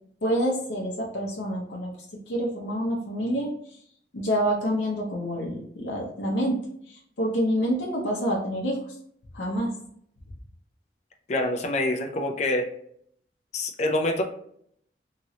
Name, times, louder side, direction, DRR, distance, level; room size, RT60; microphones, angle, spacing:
voice 1, 0.2-1.9 2.3-3.5 4.1-6.6 6.9-8.8 9.3-9.7, equal, 90° left, -2 dB, 0.6 m, -27 dB
voice 2, 11.3-12.7 13.5-14.2, left 1 dB, 40° left, 3 dB, 0.4 m, -26 dB
2.9 x 2.9 x 2.7 m, 0.67 s
head